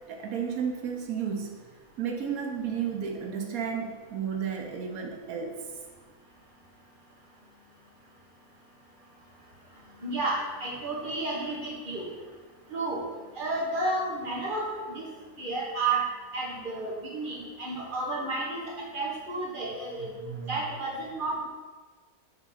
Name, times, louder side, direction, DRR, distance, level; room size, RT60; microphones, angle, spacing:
voice 1, 0.1-1.6 2.0-5.5 20.0-20.6, right 7 dB, 70° right, 2 dB, 1.1 m, -33 dB
voice 2, 10.0-12.1 12.7-13.0 13.4-15.0 15.4-16.0 16.3-18.6 18.9-20.1 20.5-21.4, right 2 dB, 35° right, -3 dB, 1.2 m, -31 dB
5.3 x 3.5 x 5.6 m, 1.4 s
omnidirectional pair, 1.6 m